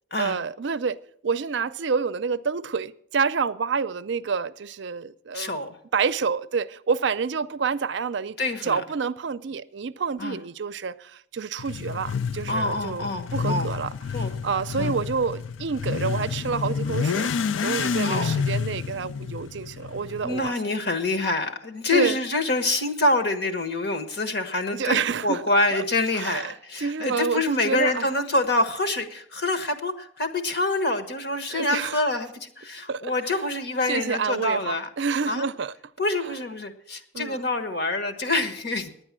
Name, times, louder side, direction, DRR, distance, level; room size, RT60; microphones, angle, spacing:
voice 1, 0.2-1.0 1.2-5.5 5.9-8.4 8.6-13.9 14.4-17.3 17.6-20.7 21.9-22.2 24.8-25.4 25.7-25.8 26.1-26.5 26.8-28.1 31.5-32.0 32.9-33.4 33.9-35.7 37.1-37.4, right 5 dB, 65° right, 0.5 m, -28 dB
voice 2, 5.3-5.7 8.4-8.8 10.2-10.4 12.5-13.7 14.1-14.3 14.7-14.9 18.0-18.3 20.2-34.9 35.3-35.4 36.0-38.9, left 2 dB, 55° left, 1.3 m, -26 dB
Motorcycle / Accelerating revving vroom, 11.6-20.5, left 6 dB, 75° left, 0.4 m, -29 dB
9.8 x 9.8 x 7.4 m
head